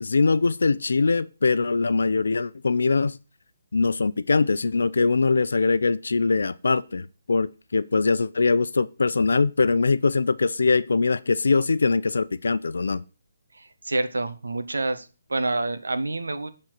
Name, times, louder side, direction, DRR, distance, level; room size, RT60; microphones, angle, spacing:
voice 1, 0.0-3.2 3.7-13.0, left 4 dB, 75° left, 0.6 m, -22 dB
voice 2, 13.5-16.5, right 2 dB, 85° right, 1.5 m, -28 dB
10.5 x 4.4 x 7.9 m
hypercardioid pair, 150°, 0 cm